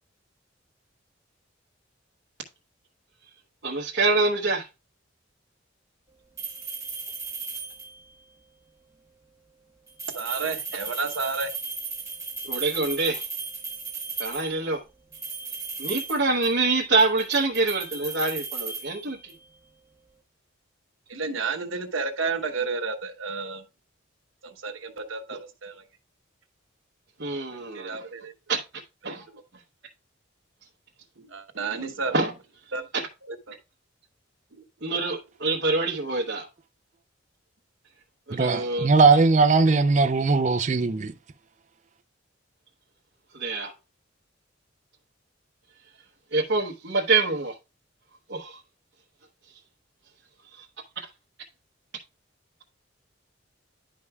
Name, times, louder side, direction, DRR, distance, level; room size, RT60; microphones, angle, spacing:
voice 1, 3.6-4.7 12.4-13.3 14.2-14.8 15.8-19.3 27.2-28.0 28.5-28.6 29.0-29.3 32.1-32.3 32.9-33.0 34.8-36.5 38.3-38.9 43.3-43.7 46.3-47.5 48.3-48.6 50.6-50.7, right 3 dB, 60° right, 1.0 m, -25 dB
sound 1, 6.4-8.1 9.9-14.6 15.1-16.7 17.0-19.5, right 5 dB, 15° right, 1.6 m, -36 dB
voice 2, 10.1-11.5 21.1-23.6 24.4-25.8 27.7-28.3 29.0-29.2 31.2-32.1 32.7-32.8 33.3-33.5, right 4 dB, 80° right, 1.0 m, -31 dB
voice 3, 38.3-41.1, right 4 dB, 35° right, 0.4 m, -19 dB
11.0 x 5.2 x 2.3 m
head